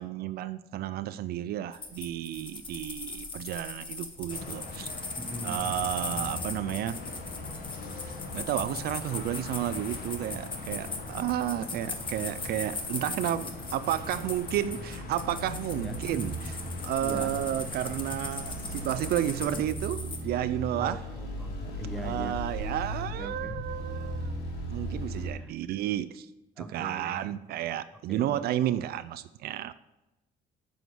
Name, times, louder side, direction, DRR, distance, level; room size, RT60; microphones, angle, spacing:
voice 1, 0.0-4.9 5.4-7.0 8.0-21.0 22.0-24.3 24.7-26.3 26.6-29.7, right 12 dB, 65° right, 0.4 m, -32 dB
sound 1, 1.7-20.2, left 3 dB, 30° left, 1.4 m, -39 dB
sound 2, 4.3-19.6, left 4 dB, 60° left, 1.6 m, -42 dB
voice 2, 5.2-5.7 15.8-16.0 17.0-17.4 20.8-22.4 23.1-23.6 25.4-25.5 26.6-27.3 28.1-28.4, right 1 dB, ahead, 1.0 m, -41 dB
sound 3, 5.6-25.3, right 1 dB, 75° left, 2.9 m, -39 dB
9.2 x 4.9 x 7.7 m
cardioid pair, 110°, 17 cm